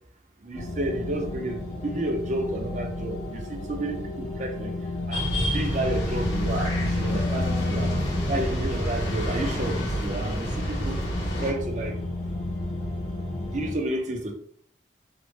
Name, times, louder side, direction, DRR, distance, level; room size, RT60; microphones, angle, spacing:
voice 1, 0.4-4.7 5.1-5.3 5.5-7.9 8.3-11.0 11.4-12.0 13.5-14.3, right 1 dB, 40° right, 4 dB, 0.4 m, -31 dB
sound 1, 0.5-13.7, left 2 dB, 40° left, 0.6 m, -32 dB
sound 2, 5.1-11.5, equal, 90° left, 1.0 m, -29 dB
3.0 x 2.0 x 3.1 m, 0.62 s
head